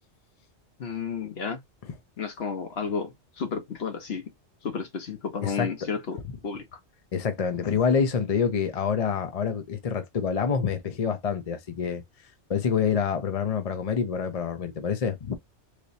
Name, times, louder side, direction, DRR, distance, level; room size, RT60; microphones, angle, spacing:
voice 1, 0.8-1.6 2.2-4.3 4.6-6.2 6.4-6.8, left 5 dB, 60° left, 1.1 m, -32 dB
voice 2, 7.1-12.0 12.5-15.4, left 6 dB, 40° left, 0.6 m, -27 dB
3.2 x 2.9 x 2.6 m
omnidirectional pair, 1.2 m